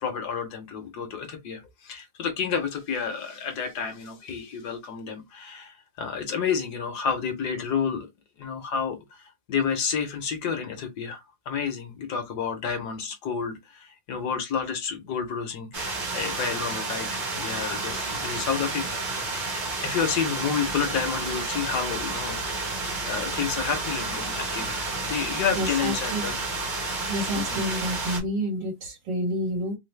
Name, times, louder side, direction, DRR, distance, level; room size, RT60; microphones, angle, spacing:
voice 1, 0.0-8.1 8.4-19.0 19.3-22.5 23.1-26.4 27.5-27.6, left 6 dB, 65° left, 1.2 m, -30 dB
sound 1, 15.7-28.2, right 3 dB, 30° right, 1.0 m, -31 dB
voice 2, 25.5-26.3 27.1-29.8, equal, 70° right, 2.0 m, -29 dB
3.8 x 2.0 x 3.1 m
omnidirectional pair, 2.0 m